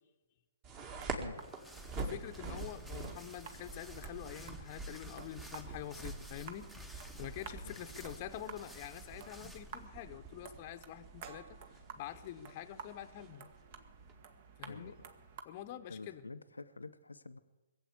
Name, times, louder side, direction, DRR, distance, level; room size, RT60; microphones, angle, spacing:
sound 1, 0.6-14.1, right 3 dB, 30° right, 2.1 m, -47 dB
sound 2, 0.8-15.4, right 6 dB, 45° right, 1.4 m, -54 dB
sound 3, 1.3-9.9, right 1 dB, 5° right, 1.0 m, -55 dB
voice 1, 1.9-11.6 12.0-13.5 14.6-14.9 15.4-16.2, left 11 dB, 40° left, 8 dB, 0.8 m, -46 dB
voice 2, 14.6-15.1 15.9-17.4, left 3 dB, 90° left, 10 dB, 0.6 m, -48 dB
21.0 x 8.0 x 8.3 m, 1.2 s
figure-of-eight pair, 130°, 0 cm